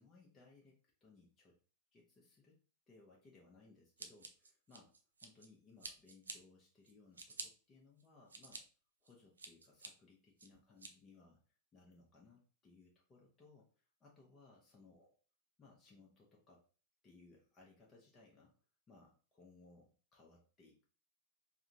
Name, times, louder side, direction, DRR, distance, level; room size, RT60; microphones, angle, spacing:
voice 1, 0.0-1.6 1.9-2.6 2.9-4.9 5.2-8.6 9.0-13.7 14.0-15.1 15.6-16.6 17.0-18.5 18.9-20.8, left 3 dB, 20° left, -2 dB, 0.8 m, -64 dB
Scissors, 4.0-5.5 5.8-6.4 6.8-7.5 8.0-8.6 9.0-9.9 10.4-10.9, right 4 dB, 75° right, 0.5 m, -49 dB
4.8 x 2.2 x 2.7 m, 0.39 s
figure-of-eight pair, 90°, 0 cm